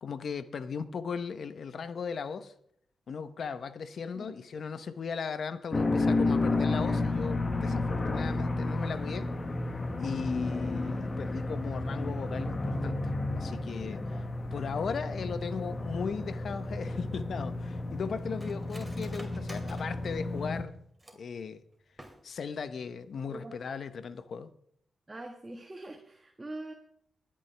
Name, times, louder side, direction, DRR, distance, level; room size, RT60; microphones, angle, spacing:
voice 1, 0.0-2.5 3.1-9.3 10.0-14.2 14.5-20.8 21.1-21.6 22.2-24.5, left 6 dB, 70° left, 13 dB, 0.9 m, -37 dB
sound 1, 5.7-20.6, left 2 dB, 40° left, 1.4 m, -32 dB
Cutlery silverware, 16.9-21.4 21.9-22.6 22.9-23.0 23.3-23.7 24.0-24.2, right 1 dB, 10° right, 2.8 m, -52 dB
voice 2, 25.1-26.7, right 2 dB, 30° right, 3 dB, 1.5 m, -43 dB
23.0 x 8.9 x 3.4 m, 0.69 s
supercardioid pair, 50°, 0 cm